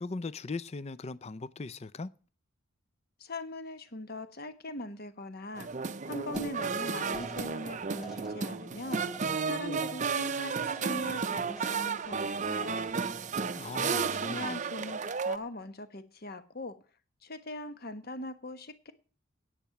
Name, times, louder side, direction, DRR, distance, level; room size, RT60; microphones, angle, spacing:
voice 1, 0.0-2.1 13.5-14.5, left 3 dB, 30° left, 0.5 m, -39 dB
voice 2, 3.2-5.7 6.0-9.0 9.4-12.2 12.4-12.9 13.8-16.8 17.2-18.9, left 1 dB, 45° left, 1.2 m, -41 dB
sound 1, 5.6-15.4, right 5 dB, 35° right, 0.5 m, -33 dB
sound 2, 6.3-12.1 12.4-13.0 13.3-13.8 14.1-14.7 15.0-15.6, right 3 dB, ahead, 1.1 m, -51 dB
10.5 x 8.6 x 5.9 m
head